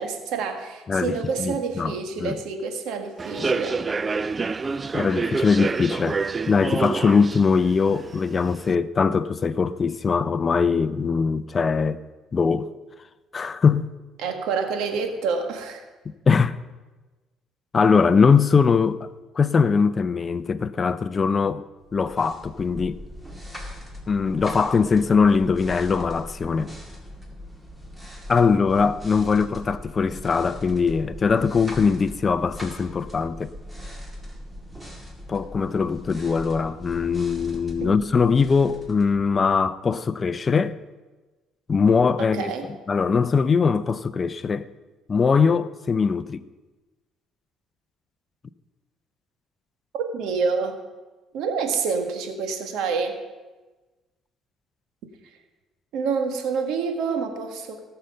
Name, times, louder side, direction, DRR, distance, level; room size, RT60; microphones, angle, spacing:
voice 1, 0.0-3.8 14.2-15.8 37.8-38.1 42.2-42.7 50.1-50.8 51.3-53.2 55.9-57.8, right 5 dB, 75° right, 1.7 m, -27 dB
voice 2, 0.9-2.4 3.4-3.5 4.9-12.0 12.3-12.7 13.3-13.9 16.3-16.6 17.7-19.1 19.4-21.6 21.9-23.0 24.1-26.7 28.3-33.5 35.3-40.8 41.7-42.5 42.9-44.7 45.1-46.4, left 5 dB, 30° left, 0.5 m, -21 dB
Human voice / Subway metro underground, 3.2-8.7, right 4 dB, 25° right, 0.3 m, -28 dB
sound 1, 21.9-39.7, equal, 10° right, 2.2 m, -40 dB
18.0 x 6.7 x 5.7 m
cardioid pair, 100°, 0 cm